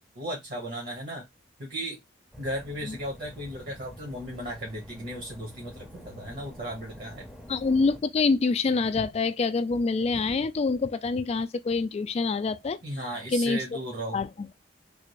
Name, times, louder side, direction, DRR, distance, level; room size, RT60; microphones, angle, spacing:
voice 1, 0.1-1.3 1.6-2.0 2.4-7.3 12.8-14.2, equal, 50° right, 1.1 m, -36 dB
sound 1, 2.3-8.0, equal, ahead, 0.6 m, -47 dB
voice 2, 7.5-12.8 13.3-13.6 14.1-14.3, left 4 dB, 35° left, 0.3 m, -26 dB
3.4 x 2.5 x 3.0 m
head